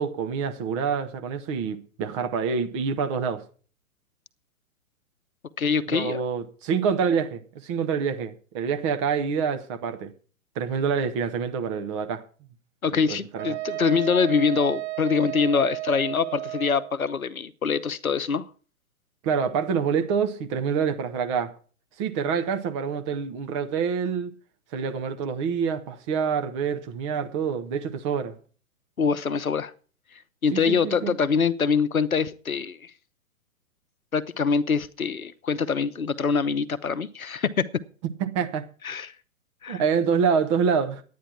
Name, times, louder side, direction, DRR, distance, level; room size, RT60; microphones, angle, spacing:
voice 1, 0.0-3.4 5.9-10.1 10.6-12.2 12.9-13.6 19.2-21.5 22.0-24.3 24.7-28.4 30.5-31.1 38.0-38.7 39.7-41.0, right 6 dB, 20° right, 0.8 m, -26 dB
voice 2, 5.6-6.2 12.8-18.5 29.0-29.7 30.4-32.9 34.1-37.7 38.8-39.1 39.6-39.8, left 5 dB, 75° left, 0.9 m, -24 dB
Wind instrument woodwind instrument, 13.4-16.9, right 19 dB, 50° right, 0.9 m, -33 dB
11.0 x 9.5 x 5.8 m
figure-of-eight pair, 115°, 42 cm